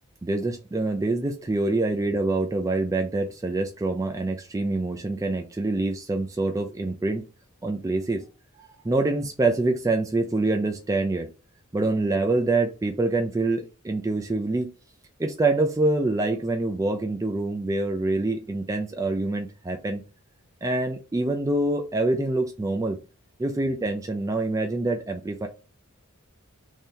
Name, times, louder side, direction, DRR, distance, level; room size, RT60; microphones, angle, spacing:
voice 1, 0.2-7.2 7.6-8.2 8.6-11.3 11.7-14.7 15.2-20.0 20.6-23.0 23.4-25.5, right 2 dB, 15° right, 0.3 m, -25 dB
3.1 x 2.7 x 3.7 m
head